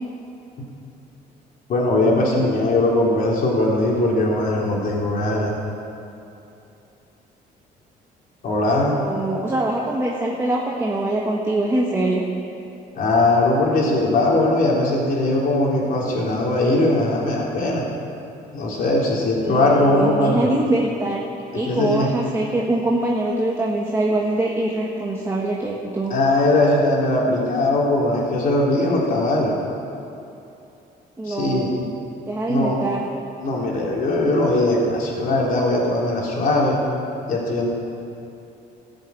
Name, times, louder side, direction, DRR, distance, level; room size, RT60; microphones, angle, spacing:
voice 1, 1.7-5.5 8.4-9.0 13.0-17.8 18.5-20.5 21.6-22.1 26.1-29.6 31.3-31.7 32.5-32.8 33.4-36.8 37.3-37.7, left 2 dB, 55° left, -3 dB, 3.7 m, -20 dB
voice 2, 8.9-12.2 19.4-21.2 21.5-26.1 31.2-31.7 32.2-33.0, right 2 dB, 15° right, -2 dB, 1.4 m, -23 dB
15.0 x 7.9 x 8.5 m, 2.8 s
cardioid pair, 110°, 17 cm